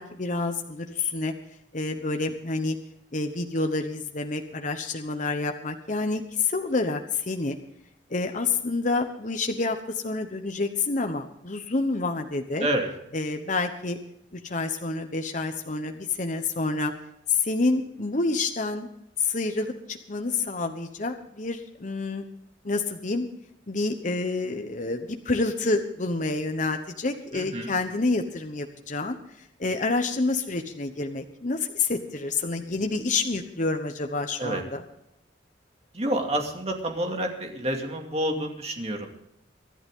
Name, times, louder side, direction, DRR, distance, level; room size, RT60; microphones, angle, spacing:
voice 1, 0.0-1.3 1.7-2.8 3.1-7.6 8.1-12.7 13.1-14.0 14.3-16.9 17.3-18.9 19.2-22.2 22.6-23.3 23.7-34.8, left 3 dB, 40° left, 5 dB, 1.0 m, -28 dB
voice 2, 12.6-12.9 27.3-27.8 34.4-34.6 35.9-39.1, right 1 dB, 35° right, 3 dB, 2.4 m, -28 dB
24.5 x 11.0 x 3.7 m, 0.78 s
head